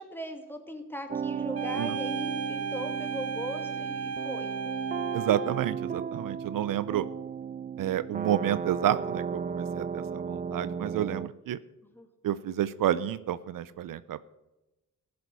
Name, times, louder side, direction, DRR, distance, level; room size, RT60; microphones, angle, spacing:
voice 1, 0.0-4.5 11.9-12.1, equal, 5° left, 5 dB, 2.2 m, -39 dB
sound 1, 1.1-11.3, right 7 dB, 25° right, 0.4 m, -35 dB
sound 2, 1.5-5.7, right 4 dB, 45° right, 0.9 m, -35 dB
voice 2, 5.1-7.1 7.8-11.6 12.2-14.2, right 11 dB, 75° right, 16 dB, 0.6 m, -30 dB
15.5 x 7.0 x 6.1 m, 1.0 s
cardioid pair, 75°, 33 cm